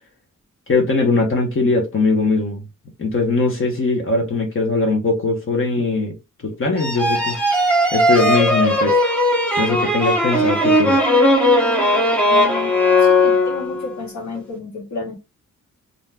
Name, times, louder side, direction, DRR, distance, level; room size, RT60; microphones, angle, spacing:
voice 1, 0.7-2.6 3.0-6.1 6.4-7.4 7.9-9.0 9.6-11.0, left 3 dB, 45° left, 0.9 m, -20 dB
sound 1, 6.8-13.9, left 1 dB, 5° left, 0.7 m, -17 dB
voice 2, 12.3-12.7 13.0-15.2, left 3 dB, 65° left, 1.5 m, -31 dB
2.7 x 2.2 x 3.3 m
wide cardioid pair, 160°, 30 cm